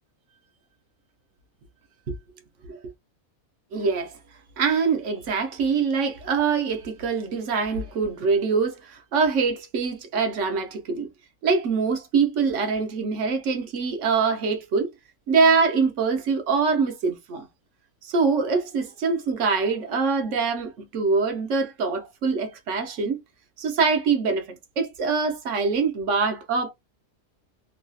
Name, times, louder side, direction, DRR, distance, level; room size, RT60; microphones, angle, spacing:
voice 1, 3.7-4.1 4.6-11.1 11.4-14.9 15.3-17.5 18.0-23.2 23.6-26.7, right 5 dB, 60° right, 0.9 m, -24 dB
3.1 x 2.3 x 2.5 m
omnidirectional pair, 1.6 m